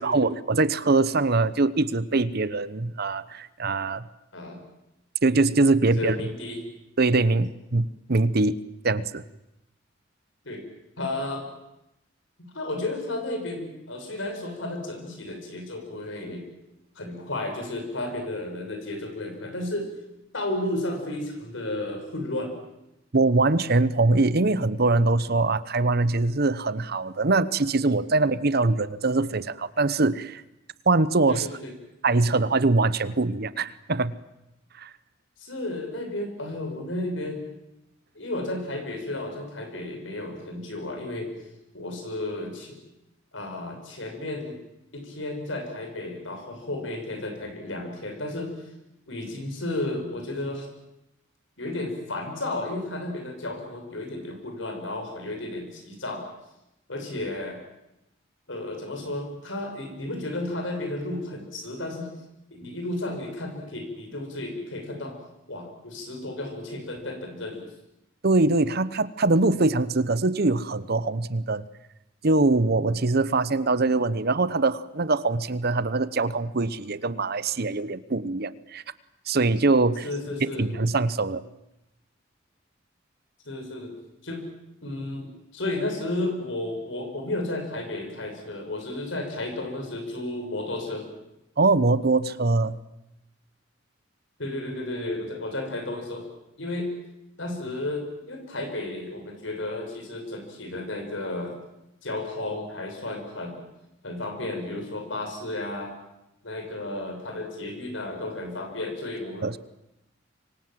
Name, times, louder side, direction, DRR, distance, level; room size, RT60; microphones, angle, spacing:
voice 1, 0.0-4.0 5.2-6.2 7.0-8.6 8.8-9.2 23.1-30.4 30.9-31.5 32.0-34.2 34.8-34.9 68.2-71.6 72.2-78.8 79.3-80.1 80.4-81.4 91.6-92.8 109.4-109.6, right 3 dB, 55° right, 16 dB, 1.0 m, -23 dB
voice 2, 5.9-6.6 10.4-10.6 11.0-11.4 12.4-16.4 16.9-19.9 20.3-22.5 31.3-31.7 35.4-37.4 38.1-41.3 41.7-42.8 43.3-44.6 44.9-48.5 49.1-50.7 51.6-56.2 56.9-57.6 58.5-62.1 62.5-65.1 65.5-67.6 80.0-80.7 83.4-83.9 84.2-84.5 84.8-91.1 94.4-96.3 96.6-96.9 97.4-101.5 102.0-103.6 104.0-105.9 106.4-109.5, left 2 dB, 70° left, 4 dB, 6.8 m, -33 dB
26.5 x 24.0 x 7.7 m, 0.88 s
head